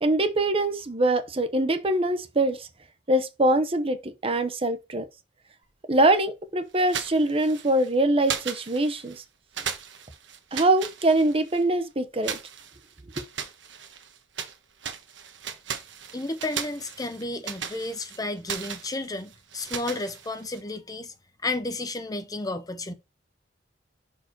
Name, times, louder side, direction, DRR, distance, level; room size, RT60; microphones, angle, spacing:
voice 1, 0.0-2.7 3.1-5.0 5.9-9.2 10.5-12.4 13.2-13.3, right 1 dB, 30° right, 0.8 m, -23 dB
sound 1, 6.8-7.9 8.2-9.2 9.5-11.6 12.2-14.6 14.8-20.6, right 7 dB, 90° right, 1.2 m, -37 dB
voice 2, 16.1-21.1 21.4-22.9, left 2 dB, 20° left, 0.7 m, -32 dB
6.0 x 4.6 x 4.5 m
head